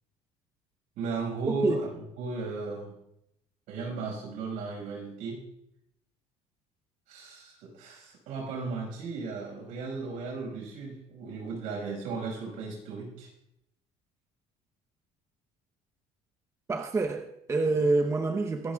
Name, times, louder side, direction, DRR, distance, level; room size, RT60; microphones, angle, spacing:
voice 1, 1.0-1.8 2.2-3.0 3.7-5.4 7.1-13.3, right 4 dB, 75° right, 5.6 m, -35 dB
voice 2, 1.5-1.8 16.7-18.7, right 3 dB, 20° right, 0.9 m, -27 dB
24.0 x 13.0 x 2.3 m
cardioid pair, 120°, 13 cm